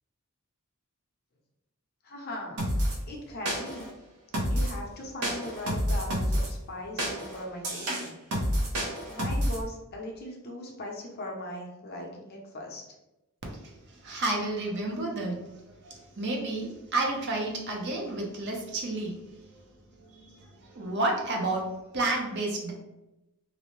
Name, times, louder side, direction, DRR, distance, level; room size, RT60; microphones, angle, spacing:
voice 1, 2.0-2.6 3.1-3.9 4.5-8.1 9.1-12.8, left 1 dB, 45° left, -1 dB, 0.6 m, -39 dB
sound 1, 2.6-3.0 3.5-3.9 4.3-4.8 5.2-6.5 7.0-9.6, equal, 90° right, 0.7 m, -29 dB
voice 2, 14.0-15.4 15.8-19.2 20.0-21.7 21.9-22.7, right 2 dB, 50° right, 0 dB, 0.6 m, -31 dB
2.6 x 2.1 x 2.9 m, 0.95 s
head